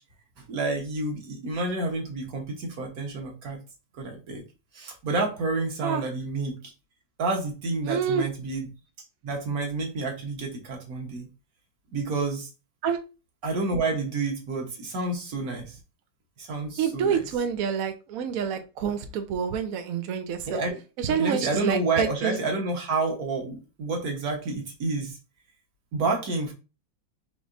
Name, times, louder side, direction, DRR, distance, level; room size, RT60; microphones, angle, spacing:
voice 1, 0.4-3.6 4.0-4.4 4.7-6.6 7.2-8.7 9.2-11.3 11.9-12.5 13.4-15.8 16.4-17.2 20.5-20.8 21.2-25.2 25.9-26.5, right 3 dB, 55° right, 2 dB, 1.6 m, -29 dB
voice 2, 7.9-8.3 12.8-13.0 16.8-20.6 21.0-22.4, right 7 dB, 75° right, 7 dB, 0.8 m, -27 dB
4.9 x 3.3 x 2.6 m, 0.30 s
omnidirectional pair, 2.1 m